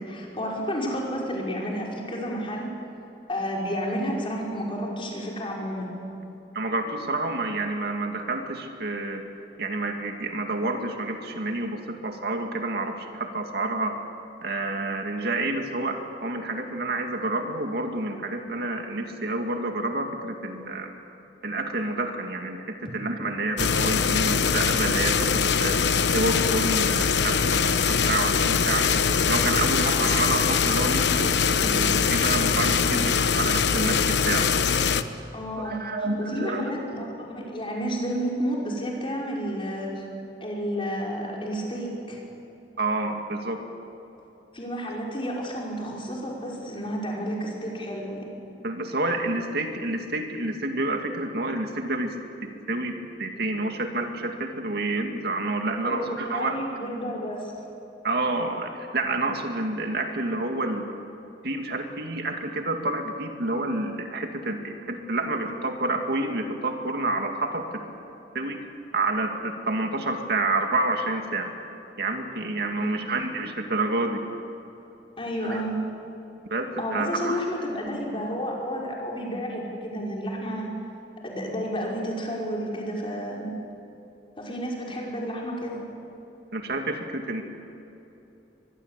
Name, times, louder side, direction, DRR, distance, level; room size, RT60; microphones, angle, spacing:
voice 1, 0.0-2.7 3.3-5.9 35.3-40.0 40.4-42.2 44.5-48.2 55.8-57.5 72.8-73.1 75.2-75.8 76.8-80.7 81.2-83.5 84.4-85.8, equal, 30° left, -2 dB, 5.5 m, -31 dB
voice 2, 6.5-9.2 9.6-13.9 14.4-20.9 21.4-25.8 26.1-28.9 29.3-31.3 31.6-34.5 35.6-36.7 42.8-43.6 48.6-52.2 52.7-52.9 53.2-56.6 58.0-60.9 61.4-67.6 68.3-68.6 68.9-71.5 72.0-74.2 75.5-75.6 76.4-77.4 86.5-87.4, right 2 dB, 65° right, 4 dB, 2.4 m, -28 dB
sound 1, 23.6-35.0, left 6 dB, 70° left, 1.0 m, -22 dB
24.0 x 21.0 x 8.4 m, 3.0 s
head